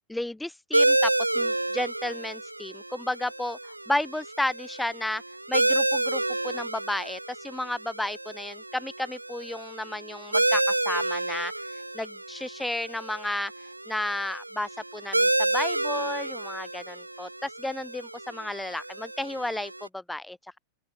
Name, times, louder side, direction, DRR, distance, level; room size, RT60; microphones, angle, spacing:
voice 1, 0.1-3.6 3.9-5.2 5.5-11.5 11.9-13.5 13.9-20.6, left 1 dB, 5° left, 1.1 m, -32 dB
sound 1, 0.7-19.9, right 2 dB, 85° right, 0.6 m, -29 dB
open air
figure-of-eight pair, 90°, 0 cm